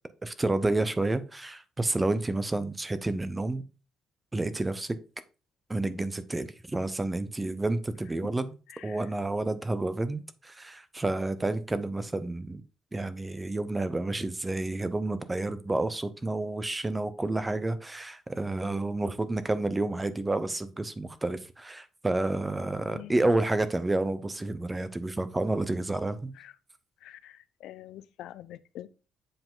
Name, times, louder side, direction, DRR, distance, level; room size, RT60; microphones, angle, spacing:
voice 1, 0.2-3.6 4.3-5.0 5.7-8.5 8.8-12.6 12.9-26.3, right 2 dB, 10° right, 0.6 m, -30 dB
voice 2, 8.7-9.0 22.9-23.2 26.4-26.5 27.0-28.9, left 13 dB, 75° left, 0.5 m, -46 dB
7.7 x 4.7 x 3.8 m
cardioid pair, 165°, 0 cm